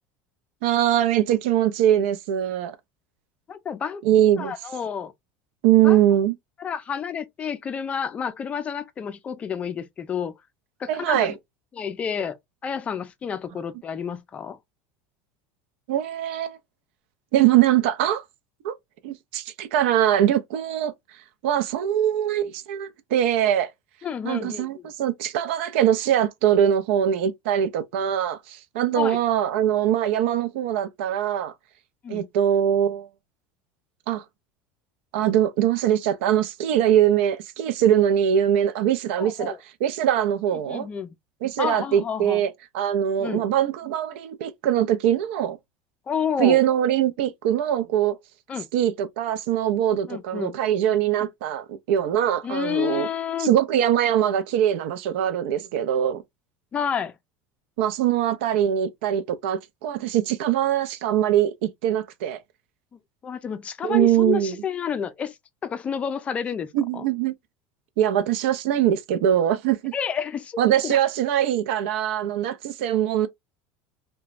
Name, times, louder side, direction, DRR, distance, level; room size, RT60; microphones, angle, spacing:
voice 1, 0.6-2.8 4.0-4.5 5.6-6.3 10.9-11.3 15.9-16.6 17.3-18.2 18.6-18.7 19.0-20.9 21.4-23.7 24.2-31.5 32.1-33.1 34.1-34.2 35.1-39.5 39.8-40.9 41.4-45.6 46.4-48.2 48.7-53.1 53.4-56.2 57.8-62.4 63.8-64.6 66.7-67.4 68.0-69.9 70.6-73.3, right 10 dB, 80° right, 0.5 m, -22 dB
voice 2, 3.5-4.0 4.4-5.1 5.8-6.0 6.6-10.3 10.8-11.4 11.7-12.4 12.6-14.6 24.0-24.7 28.9-29.2 32.0-32.3 39.2-39.6 40.7-41.1 41.6-42.4 43.2-43.5 46.1-46.6 48.5-48.7 50.1-50.6 51.2-51.3 52.4-53.6 56.7-57.1 63.2-65.3 65.6-67.1 69.9-71.0, left 7 dB, 20° left, 0.4 m, -30 dB
2.9 x 2.2 x 2.4 m
cardioid pair, 155°, 6 cm